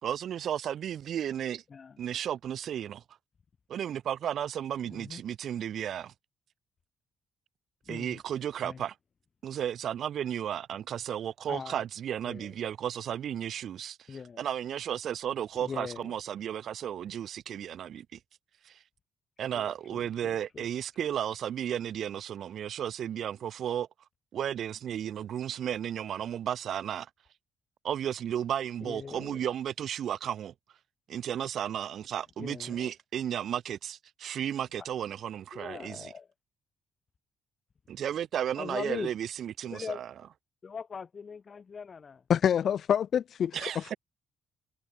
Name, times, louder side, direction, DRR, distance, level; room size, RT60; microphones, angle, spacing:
voice 1, 0.0-1.6 2.0-3.0 3.7-6.1 7.9-8.9 9.4-18.2 18.6-18.8 19.4-23.9 24.3-27.1 27.8-30.5 31.1-36.1 37.9-40.1 43.5-44.0, right 10 dB, 65° right, 3.2 m, -34 dB
voice 2, 1.7-2.0 4.9-5.2 7.9-8.2 8.6-8.8 11.5-11.8 12.2-12.6 14.1-14.5 15.6-16.1 19.4-20.7 28.8-29.5 32.4-32.9 35.5-36.3 38.6-39.1 39.6-40.0 40.6-42.2, left 5 dB, 40° left, 4.5 m, -41 dB
voice 3, 42.3-43.9, left 9 dB, 60° left, 0.5 m, -26 dB
cardioid pair, 90°, 0 cm